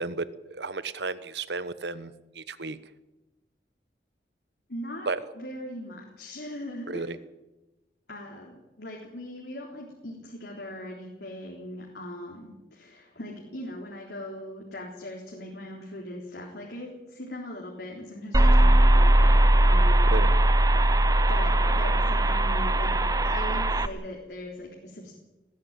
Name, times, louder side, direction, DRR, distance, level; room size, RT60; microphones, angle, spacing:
voice 1, 0.0-2.8 5.1-5.2 6.9-7.2 20.1-20.3, right 3 dB, 75° right, 14 dB, 1.2 m, -33 dB
voice 2, 4.7-5.1 5.3-7.1 8.1-20.1 21.3-25.1, left 1 dB, 70° left, -1 dB, 3.6 m, -40 dB
sound 1, 18.3-23.9, right 1 dB, 20° right, 0.8 m, -20 dB
19.5 x 16.0 x 8.8 m, 1.0 s
head